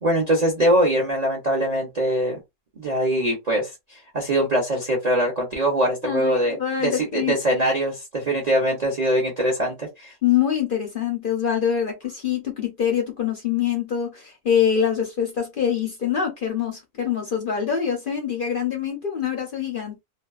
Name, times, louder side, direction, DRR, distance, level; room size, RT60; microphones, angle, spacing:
voice 1, 0.0-2.4 2.8-10.1, right 1 dB, 40° right, 0.6 m, -22 dB
voice 2, 6.0-7.3 10.2-20.0, left 8 dB, 55° left, 0.6 m, -24 dB
2.6 x 2.2 x 2.3 m
omnidirectional pair, 1.6 m